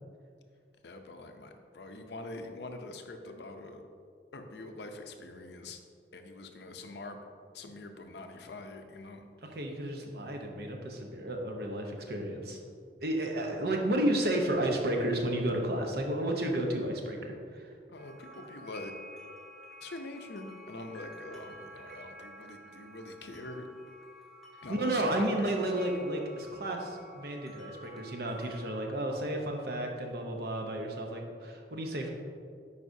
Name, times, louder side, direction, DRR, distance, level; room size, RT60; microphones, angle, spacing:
voice 1, 0.8-3.8 4.3-5.8 6.1-7.2 7.5-9.3 17.9-18.9 19.8-23.7 24.6-25.5, left 2 dB, 75° left, 5 dB, 0.6 m, -44 dB
voice 2, 9.4-12.6 13.0-17.7 24.7-32.1, right 1 dB, 60° right, 2 dB, 0.8 m, -32 dB
sound 1, 18.0-28.8, equal, ahead, 0.8 m, -51 dB
9.4 x 4.9 x 2.7 m, 2.3 s
head